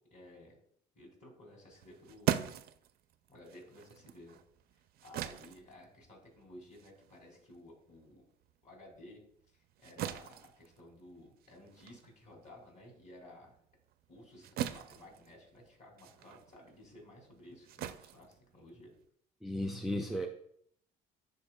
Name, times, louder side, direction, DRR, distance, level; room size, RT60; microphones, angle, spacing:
voice 1, 0.1-0.6 0.9-2.4 3.3-4.4 5.0-8.2 8.6-9.2 9.5-13.5 14.1-18.9, left 1 dB, 45° left, 0 dB, 2.7 m, -55 dB
sound 1, 1.7-8.5 8.9-19.1, right 11 dB, 65° right, 0.4 m, -42 dB
voice 2, 19.4-20.3, equal, ahead, 4 dB, 0.4 m, -35 dB
11.0 x 4.3 x 2.2 m, 0.67 s
cardioid pair, 110°, 17 cm